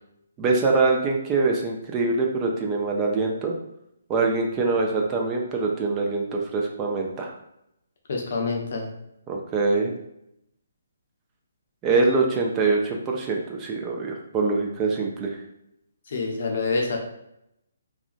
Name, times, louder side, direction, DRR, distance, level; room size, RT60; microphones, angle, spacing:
voice 1, 0.4-3.5 4.1-7.3 9.3-9.9 11.8-15.4, right 3 dB, 20° right, 0 dB, 0.3 m, -24 dB
voice 2, 8.1-8.9 16.1-17.0, left 3 dB, 55° left, 0 dB, 0.6 m, -26 dB
2.4 x 2.1 x 2.5 m, 0.81 s
figure-of-eight pair, 140°, 0 cm